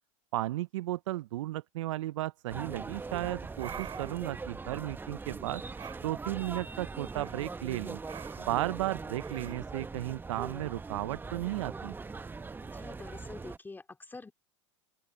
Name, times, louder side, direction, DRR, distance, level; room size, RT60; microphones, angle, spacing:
voice 1, 0.3-5.6 6.0-8.0 8.4-11.9, right 16 dB, 75° right, 0.5 m, -34 dB
sound 1, 2.5-13.6, right 4 dB, 10° right, 0.9 m, -41 dB
sound 2, 3.6-4.3 5.8-6.0 7.0-7.5 8.1-8.6 9.2-9.5, right 9 dB, 30° right, 2.9 m, -45 dB
voice 2, 12.6-14.3, left 3 dB, 10° left, 3.0 m, -46 dB
open air
hypercardioid pair, 100°, 16 cm